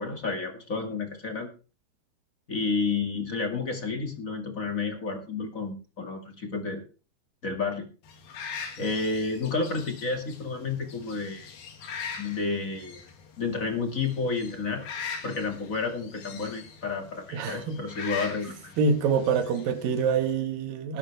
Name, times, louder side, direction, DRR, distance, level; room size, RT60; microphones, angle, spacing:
voice 1, 0.0-1.5 2.5-6.8 7.4-7.8 8.8-11.5 12.2-13.0 13.4-14.9 15.2-18.7, left 4 dB, 35° left, 1.4 m, -31 dB
sound 1, 8.1-20.3, left 6 dB, 65° left, 4.0 m, -42 dB
voice 2, 17.3-17.8 18.8-21.0, right 5 dB, 60° right, 3.1 m, -26 dB
18.5 x 9.9 x 3.4 m
omnidirectional pair, 4.9 m